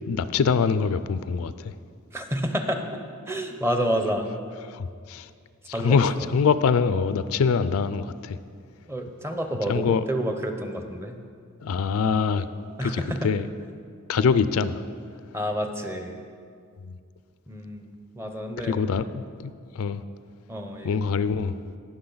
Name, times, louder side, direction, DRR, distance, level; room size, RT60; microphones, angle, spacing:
voice 1, 0.1-1.7 4.7-5.3 5.8-8.4 9.7-10.0 11.6-12.5 12.8-13.5 14.1-14.8 16.8-17.0 18.6-20.0 20.8-21.6, left 5 dB, 75° left, 13 dB, 0.4 m, -24 dB
voice 2, 2.1-2.9 3.3-4.3 5.7-6.2 8.9-11.2 12.8-13.3 15.3-16.2 17.5-17.9 18.1-18.8 20.5-21.1, equal, 10° right, 5 dB, 0.7 m, -29 dB
18.5 x 6.3 x 3.9 m, 2.2 s
head